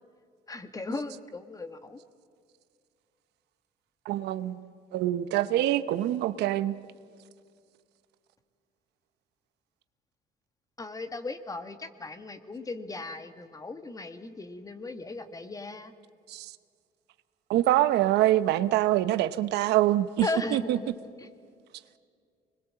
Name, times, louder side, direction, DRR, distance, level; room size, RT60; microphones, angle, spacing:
voice 1, 0.5-2.0 10.8-15.9 20.2-20.9 21.2-21.3, left 3 dB, 20° left, 1.6 m, -37 dB
voice 2, 4.1-4.6 4.9-6.7 16.3-16.5 17.5-20.2 20.5-20.8, right 14 dB, 80° right, 0.9 m, -25 dB
25.5 x 21.0 x 7.6 m
cardioid pair, 110°, 17 cm